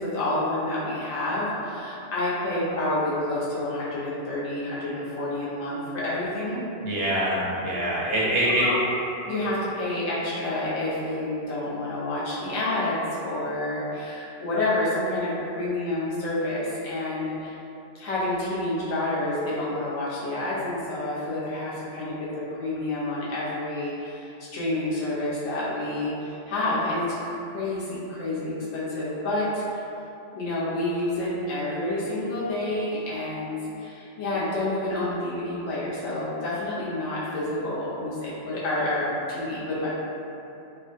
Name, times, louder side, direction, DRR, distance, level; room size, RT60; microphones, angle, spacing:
voice 1, 0.0-6.6 8.4-8.9 9.3-17.5 17.9-29.6 30.3-39.9, left 1 dB, 90° left, -9 dB, 1.2 m, -29 dB
voice 2, 6.8-8.7, right 1 dB, 65° right, -6 dB, 0.7 m, -24 dB
3.3 x 2.2 x 2.6 m, 2.9 s
omnidirectional pair, 1.3 m